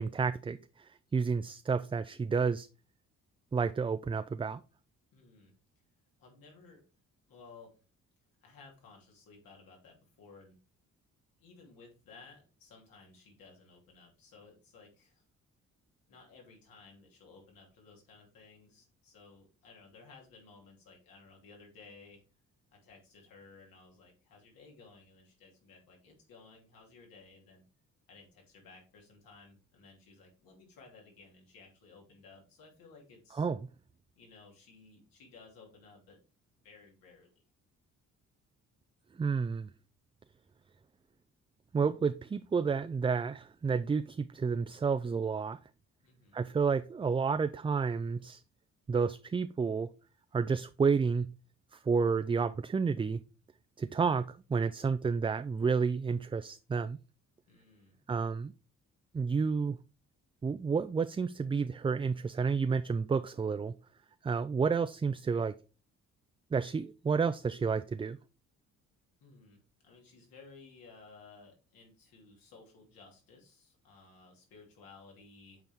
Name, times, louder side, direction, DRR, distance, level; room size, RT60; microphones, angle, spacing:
voice 1, 0.0-2.7 3.5-4.6 33.3-33.6 39.2-39.7 41.7-45.6 46.3-48.4 48.9-49.9 50.3-51.3 51.7-53.2 53.8-57.0 58.1-58.5 59.1-59.8 60.4-63.7 64.2-65.6 66.5-68.2, right 5 dB, 15° right, 0.3 m, -30 dB
voice 2, 5.1-5.5 6.2-6.8 7.3-7.8 8.4-10.6 11.4-15.2 16.1-22.2 22.7-27.6 28.1-33.5 34.2-36.2 36.6-37.3 46.0-46.4 57.5-58.0 69.2-75.6, left 4 dB, 80° left, 2.7 m, -57 dB
7.7 x 4.5 x 3.5 m
supercardioid pair, 55°, 34 cm